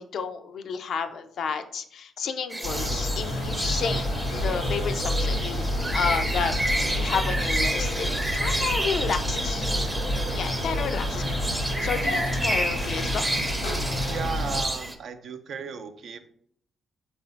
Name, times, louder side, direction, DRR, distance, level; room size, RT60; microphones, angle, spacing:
voice 1, 0.0-8.1 8.3-9.9 10.4-11.2 11.5-13.2, left 6 dB, 65° left, 8 dB, 0.3 m, -31 dB
sound 1, 2.5-14.9, right 1 dB, 20° right, 0.6 m, -30 dB
sound 2, 2.6-14.6, left 1 dB, 90° left, 1.0 m, -29 dB
voice 2, 14.0-16.3, right 6 dB, 65° right, 8 dB, 0.4 m, -35 dB
3.7 x 2.6 x 3.1 m, 0.63 s
hypercardioid pair, 50°, 0 cm